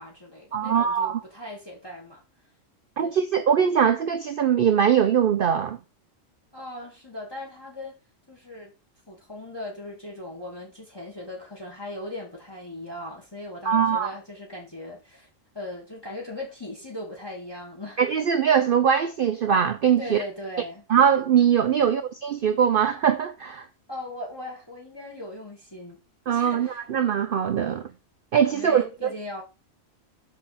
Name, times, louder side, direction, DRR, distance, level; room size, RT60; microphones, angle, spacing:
voice 1, 0.0-2.2 3.0-3.2 6.5-7.9 8.3-8.7 9.1-15.3 15.5-18.0 20.0-20.8 21.8-21.9 23.9-26.0 26.3-26.8 28.5-29.4, left 1 dB, 20° left, 1.6 m, -38 dB
voice 2, 0.5-1.2 3.0-5.8 13.6-14.1 18.0-20.2 20.9-23.7 26.3-27.9 28.3-29.1, right 8 dB, 60° right, 0.6 m, -22 dB
6.3 x 5.7 x 4.2 m
omnidirectional pair, 1.3 m